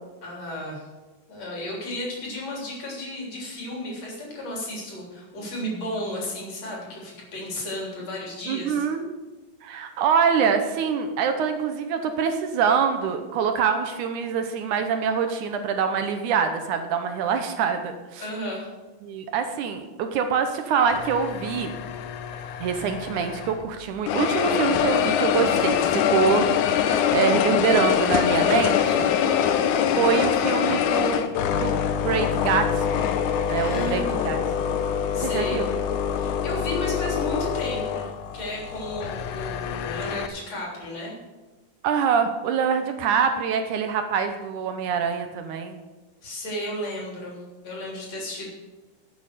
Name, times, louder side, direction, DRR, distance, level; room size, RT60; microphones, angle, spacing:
voice 1, 0.2-0.9 1.3-8.9 18.2-18.7 29.2-29.5 33.6-34.4 35.1-35.6 36.1-41.1 46.2-48.5, left 1 dB, 50° left, -3 dB, 4.6 m, -33 dB
voice 2, 8.5-9.1 9.6-18.3 19.0-21.7 22.6-29.1 30.0-31.3 31.6-33.1 33.5-34.4 35.2-35.7 41.8-45.8, right 6 dB, 75° right, 7 dB, 2.2 m, -25 dB
sound 1, 20.9-23.7 24.1-40.3, left 8 dB, 80° left, 2.1 m, -24 dB
11.5 x 8.5 x 6.7 m, 1.2 s
omnidirectional pair, 3.8 m